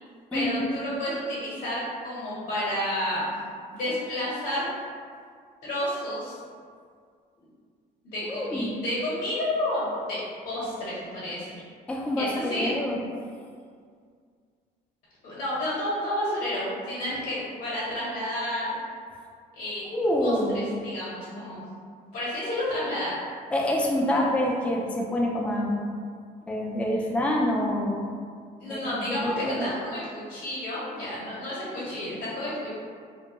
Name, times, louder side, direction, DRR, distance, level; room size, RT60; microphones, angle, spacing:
voice 1, 0.3-3.3 3.7-4.7 5.6-6.4 8.0-10.2 10.4-11.6 12.2-12.7 15.2-18.7 19.6-21.6 22.1-23.1 28.6-32.7, left 1 dB, 65° left, -10 dB, 1.0 m, -31 dB
voice 2, 8.2-8.7 11.9-13.0 19.9-20.6 23.5-25.8 26.5-28.0 28.7-29.7, left 1 dB, 5° left, -2 dB, 0.3 m, -26 dB
2.3 x 2.2 x 2.8 m, 2.1 s
cardioid pair, 110°, 17 cm